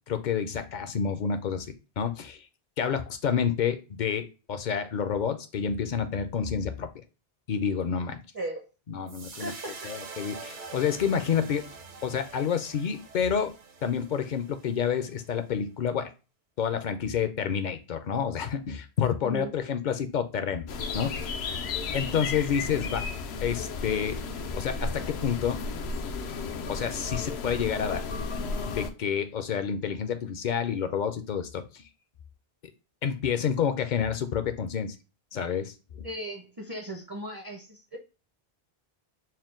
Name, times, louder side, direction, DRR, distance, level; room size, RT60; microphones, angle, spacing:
voice 1, 0.1-1.7 2.0-2.4 2.8-6.9 7.5-8.2 8.9-9.5 9.8-11.6 12.0-13.5 13.8-16.1 16.6-20.7 20.9-21.5 21.9-23.1 23.4-24.2 24.6-25.6 26.7-28.0 28.7-31.8 33.0-34.9 35.3-35.7, left 7 dB, 55° left, 9 dB, 0.6 m, -29 dB
voice 2, 8.3-8.7 9.3-9.9 19.2-19.5 36.0-38.0, right 1 dB, 30° right, 3 dB, 0.5 m, -37 dB
sound 1, 9.1-15.5, right 4 dB, 55° right, 0.8 m, -45 dB
sound 2, 20.7-28.9, left 4 dB, 85° left, 0.9 m, -33 dB
4.4 x 2.2 x 3.6 m, 0.31 s
omnidirectional pair, 1.1 m